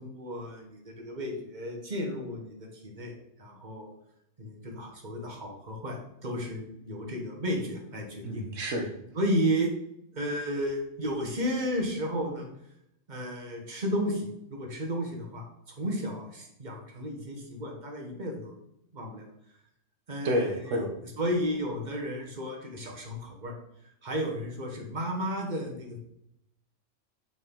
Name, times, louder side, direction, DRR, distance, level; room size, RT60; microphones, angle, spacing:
voice 1, 0.0-3.9 4.4-8.5 9.1-9.7 10.1-12.5 13.1-18.5 18.9-19.2 20.1-23.6 24.0-26.0, equal, 40° right, 1 dB, 1.3 m, -33 dB
voice 2, 8.2-8.9 20.2-20.9, equal, 85° right, 3 dB, 1.4 m, -29 dB
6.7 x 4.0 x 3.7 m, 0.77 s
omnidirectional pair, 1.3 m